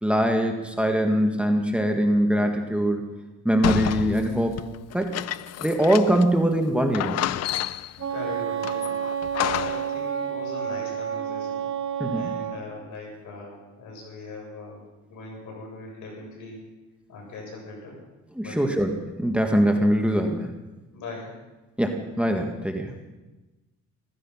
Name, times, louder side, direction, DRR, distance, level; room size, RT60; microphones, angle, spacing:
voice 1, 0.0-3.0 3.5-4.6 4.9-5.2 5.6-7.2 12.0-12.3 18.4-20.5 21.8-22.9, equal, 5° right, 4 dB, 1.8 m, -22 dB
sound 1, 3.6-6.4 6.6-6.7 6.9-8.0 8.6-10.0, left 13 dB, 60° left, 0.5 m, -30 dB
Wind instrument woodwind instrument, 8.0-12.6, right 9 dB, 75° right, 2.7 m, -30 dB
voice 2, 8.1-9.0 9.4-11.7 12.1-14.8 15.1-16.6 17.1-18.0 18.4-18.7 20.9-21.3, left 3 dB, 75° left, -1 dB, 7.5 m, -40 dB
15.5 x 15.5 x 5.7 m, 1.1 s
cardioid pair, 90°, 30 cm